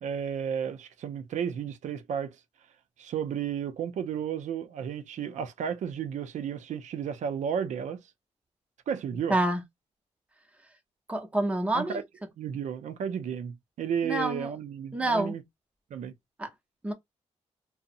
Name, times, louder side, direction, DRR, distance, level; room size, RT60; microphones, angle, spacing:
voice 1, 0.0-2.4 3.0-8.0 8.9-9.3 11.7-12.0 12.4-15.4 15.9-16.1, right 8 dB, 85° right, 0.5 m, -33 dB
voice 2, 9.3-9.6 11.1-12.0 14.0-14.5 14.9-15.4 16.4-16.5 16.8-16.9, right 1 dB, 10° right, 0.7 m, -27 dB
2.7 x 2.0 x 2.6 m
cardioid pair, 95°, 12 cm